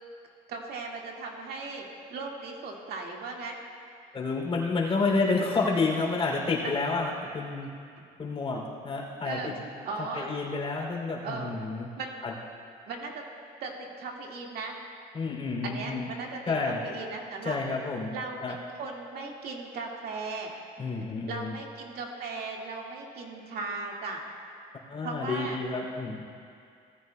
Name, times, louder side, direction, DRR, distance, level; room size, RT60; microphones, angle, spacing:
voice 1, 0.5-1.8 2.1-3.6 9.2-9.5 9.9-10.3 11.2-11.6 12.0-12.1 12.9-13.2 13.6-14.7 15.6-17.6 18.1-20.5 21.3-24.2 25.0-25.6, right 3 dB, 65° right, 0 dB, 1.9 m, -37 dB
voice 2, 4.1-7.7 8.2-9.5 10.0-11.9 12.2-12.3 15.1-16.1 16.5-16.8 17.4-18.1 18.4-18.6 20.8-21.5 24.9-26.3, left 3 dB, 30° left, -1 dB, 2.9 m, -29 dB
19.0 x 14.5 x 2.2 m, 2.4 s
cardioid pair, 110°, 17 cm